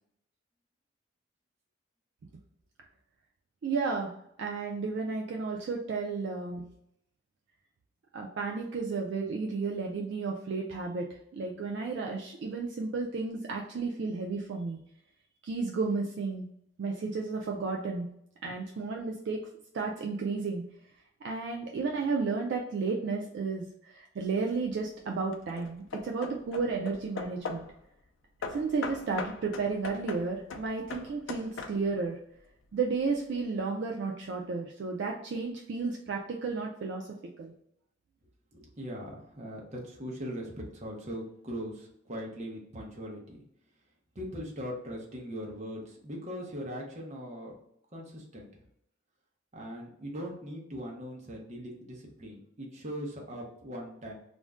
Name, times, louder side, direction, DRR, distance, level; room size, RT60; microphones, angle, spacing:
voice 1, 3.6-6.6 8.1-11.1 11.3-14.8 15.4-16.5 16.8-18.1 18.4-19.4 19.7-20.6 21.2-27.7 28.5-32.2 32.7-37.1 37.4-37.5, right 4 dB, 60° right, 1 dB, 0.3 m, -33 dB
Hammer / Wood, 24.2-24.7 25.3-27.8 28.4-32.1, left 4 dB, 80° left, 0.4 m, -40 dB
voice 2, 38.5-43.4 44.1-47.5 47.9-48.6 49.5-54.1, equal, 35° right, -1 dB, 0.7 m, -40 dB
2.5 x 2.1 x 3.4 m, 0.73 s
head